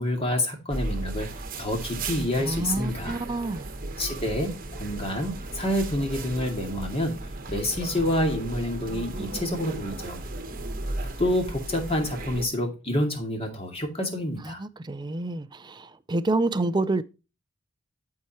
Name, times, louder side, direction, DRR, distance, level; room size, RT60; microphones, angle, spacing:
voice 1, 0.0-3.2 4.0-7.2 7.5-10.2 11.2-14.6, left 1 dB, 25° left, 2.3 m, -28 dB
sound 1, 0.7-12.5, right 2 dB, 40° right, 1.2 m, -35 dB
voice 2, 2.4-3.7 14.4-17.0, right 2 dB, 20° right, 0.5 m, -28 dB
12.5 x 4.7 x 2.9 m
head